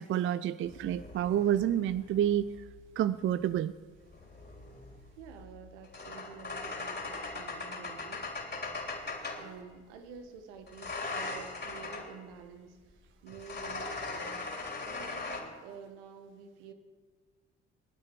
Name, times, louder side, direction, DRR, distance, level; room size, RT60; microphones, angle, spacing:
voice 1, 0.0-2.5 3.0-3.7, right 11 dB, 35° right, 16 dB, 0.5 m, -29 dB
sound 1, 0.6-2.8 4.0-9.5 10.7-12.1 13.3-15.4, left 3 dB, 25° left, 3.7 m, -40 dB
voice 2, 5.2-8.3 9.3-14.5 14.9-16.7, right 6 dB, 65° right, 7 dB, 1.7 m, -49 dB
21.0 x 11.5 x 4.7 m, 1.4 s
figure-of-eight pair, 45°, 37 cm